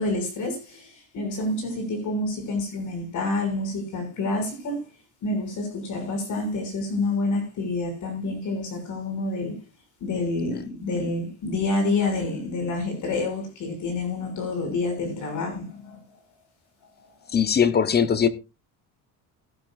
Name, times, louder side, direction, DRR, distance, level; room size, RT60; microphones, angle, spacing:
voice 1, 0.0-4.9 5.2-9.6 10.0-16.0 17.3-17.4, left 2 dB, 50° left, 6.4 m, -28 dB
voice 2, 17.3-18.3, left 7 dB, 25° left, 0.9 m, -21 dB
16.5 x 11.0 x 2.5 m
cardioid pair, 155°, 38 cm